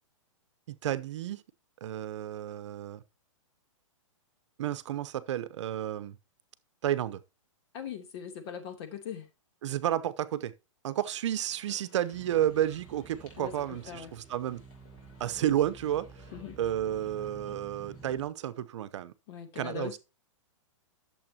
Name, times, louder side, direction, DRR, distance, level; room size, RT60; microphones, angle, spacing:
voice 1, 0.7-1.4 1.8-3.0 4.6-6.2 6.8-7.2 9.6-10.5 10.8-14.6 15.2-16.3 16.6-19.1 19.6-19.9, right 11 dB, 60° right, 0.9 m, -31 dB
voice 2, 7.7-9.3 13.4-14.1 16.3-16.6 19.3-20.0, left 8 dB, 50° left, 2.9 m, -40 dB
sound 1, 11.3-18.2, left 5 dB, 35° left, 3.0 m, -59 dB
sound 2, 12.1-18.3, right 5 dB, 20° right, 1.8 m, -51 dB
12.0 x 7.1 x 2.9 m
hypercardioid pair, 140°, 17 cm